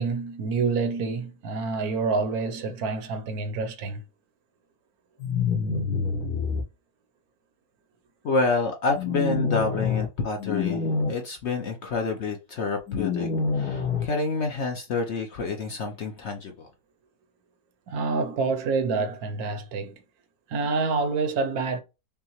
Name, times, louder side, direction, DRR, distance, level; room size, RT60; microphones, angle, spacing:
voice 1, 0.0-4.0 17.9-20.0 20.5-21.8, right 4 dB, 70° right, 1.1 m, -27 dB
sound 1, 5.2-6.6 8.9-10.1 10.4-11.1 12.9-14.1, left 5 dB, 80° left, 1.6 m, -26 dB
voice 2, 8.2-10.8 11.1-13.3 13.5-16.7, left 3 dB, 60° left, 0.8 m, -28 dB
5.4 x 2.1 x 2.9 m
omnidirectional pair, 1.7 m